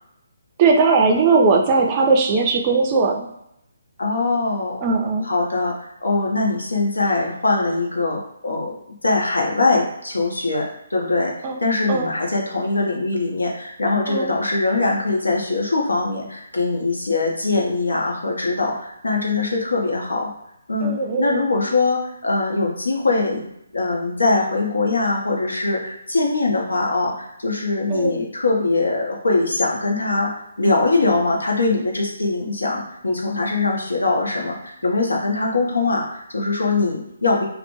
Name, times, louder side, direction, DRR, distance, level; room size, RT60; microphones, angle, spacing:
voice 1, 0.6-3.3 4.8-5.3 11.4-11.6 11.9-12.1 14.1-14.3 20.8-21.5 27.9-28.2, right 4 dB, 30° right, 2 dB, 0.3 m, -18 dB
voice 2, 4.0-4.9 5.3-5.7 6.0-8.7 9.0-11.3 11.6-20.3 20.7-23.4 23.7-30.3 30.6-37.5, left 3 dB, 80° left, -1 dB, 0.7 m, -22 dB
2.1 x 2.0 x 2.9 m, 0.80 s
figure-of-eight pair, 145°, 0 cm